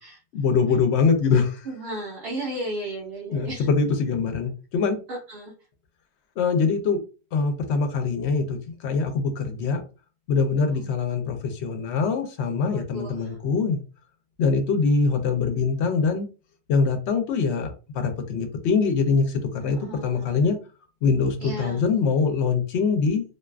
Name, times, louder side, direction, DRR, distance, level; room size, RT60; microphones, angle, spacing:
voice 1, 0.3-1.7 3.3-5.0 6.4-7.0 7.3-9.8 10.3-13.8 14.4-16.3 16.7-20.6 21.0-23.2, left 5 dB, 75° left, 0.9 m, -23 dB
voice 2, 1.7-3.7 5.1-5.5 10.6-10.9 12.7-13.3 19.6-20.4 21.4-21.8, right 1 dB, 65° right, 0.9 m, -35 dB
2.6 x 2.3 x 2.2 m
omnidirectional pair, 1.2 m